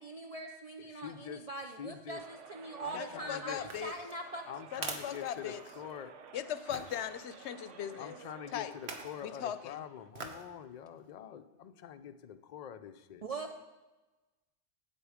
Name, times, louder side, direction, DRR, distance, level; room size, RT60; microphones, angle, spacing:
voice 1, 0.0-4.4 13.2-13.5, right 2 dB, 45° right, 3 dB, 0.5 m, -42 dB
voice 2, 0.8-1.5 1.8-2.2 2.8-3.6 4.5-6.1 8.0-13.2, left 9 dB, 55° left, 10 dB, 0.5 m, -45 dB
sound 1, 2.1-10.1, right 6 dB, 90° right, 1.1 m, -53 dB
voice 3, 2.9-3.9 4.7-5.6 6.3-8.2 8.5-8.7 9.2-9.8, left 10 dB, 75° left, 13 dB, 0.8 m, -39 dB
sound 2, 3.6-6.0 6.7-7.0 8.7-9.2 10.1-10.5 11.0-11.1, right 4 dB, 65° right, 1.2 m, -44 dB
8.5 x 8.1 x 4.9 m, 1.1 s
omnidirectional pair, 1.2 m